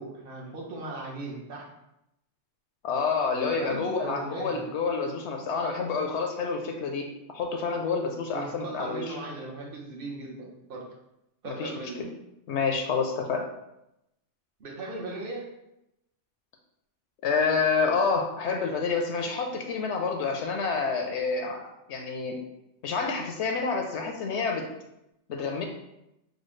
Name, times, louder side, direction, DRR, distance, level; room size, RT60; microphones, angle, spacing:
voice 1, 0.0-1.7 3.5-4.7 8.3-10.9 11.4-12.0 14.6-15.5, right 2 dB, 50° right, -2 dB, 1.1 m, -38 dB
voice 2, 2.8-9.2 11.4-11.7 12.0-12.1 12.5-13.4 17.2-21.6 21.9-22.4 22.8-24.6 25.3-25.7, left 4 dB, 70° left, 3 dB, 0.8 m, -28 dB
6.2 x 2.2 x 3.1 m, 0.86 s
omnidirectional pair, 1.3 m